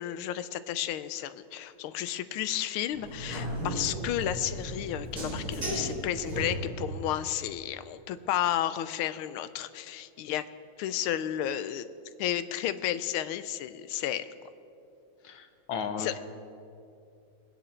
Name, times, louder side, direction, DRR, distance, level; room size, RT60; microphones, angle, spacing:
voice 1, 0.0-10.4 10.8-11.9 12.2-14.3 16.0-16.2, left 11 dB, 90° left, 13 dB, 1.5 m, -32 dB
sound 1, 2.9-7.0, right 1 dB, 45° right, 4.2 m, -35 dB
voice 2, 15.2-16.2, left 6 dB, 75° left, 6 dB, 1.8 m, -35 dB
22.0 x 9.8 x 4.4 m, 2.6 s
omnidirectional pair, 2.3 m